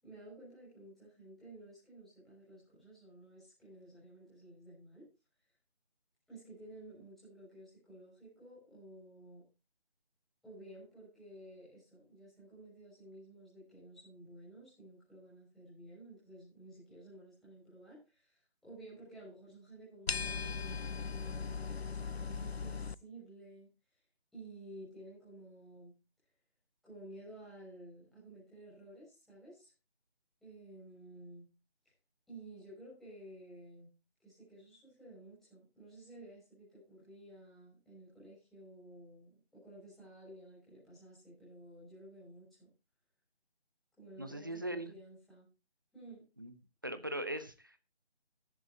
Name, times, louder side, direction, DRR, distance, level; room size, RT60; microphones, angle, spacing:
voice 1, 0.0-5.1 6.3-9.4 10.4-23.7 24.3-25.9 26.8-29.7 30.4-31.5 32.3-33.9 34.2-42.7 44.0-45.5 45.9-46.2, right 1 dB, ahead, -10 dB, 5.7 m, -53 dB
sound 1, 20.1-22.9, left 5 dB, 70° left, 0.7 m, -38 dB
voice 2, 44.2-44.9 46.4-46.5 46.8-47.8, right 1 dB, 20° right, 10 dB, 0.8 m, -39 dB
15.5 x 11.0 x 2.8 m, 0.29 s
figure-of-eight pair, 160°, 32 cm